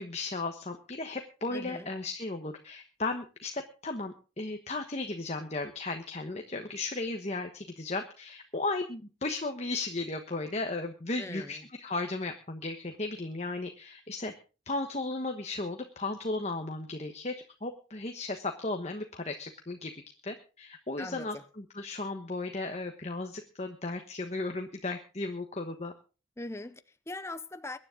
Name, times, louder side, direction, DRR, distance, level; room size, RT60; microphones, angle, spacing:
voice 1, 0.0-14.3 14.7-17.3 17.6-19.9 20.2-25.9, left 2 dB, 35° left, 1.2 m, -35 dB
voice 2, 1.5-1.9 11.2-11.6 21.0-21.4 26.4-27.8, left 2 dB, 15° left, 0.7 m, -41 dB
23.0 x 10.0 x 3.8 m
head